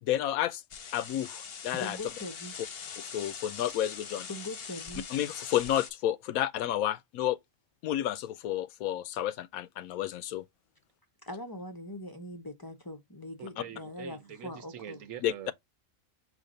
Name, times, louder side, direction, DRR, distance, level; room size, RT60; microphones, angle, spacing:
voice 1, 0.0-0.6 0.9-2.0 3.0-4.3 5.1-7.4 7.8-10.4 13.6-13.7 15.2-15.3, left 12 dB, 85° left, 1.0 m, -31 dB
sound 1, 0.7-5.9, left 6 dB, 50° left, 0.9 m, -43 dB
voice 2, 1.7-2.6 4.3-5.1 11.2-14.2 14.4-15.0, left 1 dB, 25° left, 0.5 m, -41 dB
voice 3, 13.4-15.5, right 10 dB, 70° right, 1.1 m, -44 dB
5.1 x 2.6 x 3.8 m
omnidirectional pair, 1.4 m